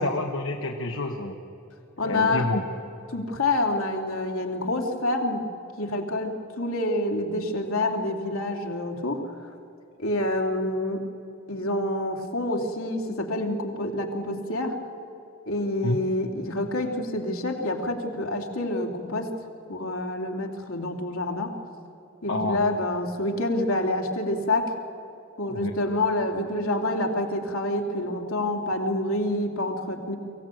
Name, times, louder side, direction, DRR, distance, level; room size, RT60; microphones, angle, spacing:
voice 1, 0.0-1.4 2.0-2.6 15.8-16.0 22.3-22.6 25.5-25.7, left 2 dB, 65° left, 3 dB, 1.2 m, -28 dB
voice 2, 2.0-2.5 3.1-5.5 5.8-9.2 10.0-11.0 11.5-14.8 15.5-19.3 19.7-21.5 22.2-24.7 25.4-30.2, left 1 dB, 85° left, 2 dB, 2.8 m, -27 dB
23.5 x 16.0 x 9.1 m, 2.9 s
head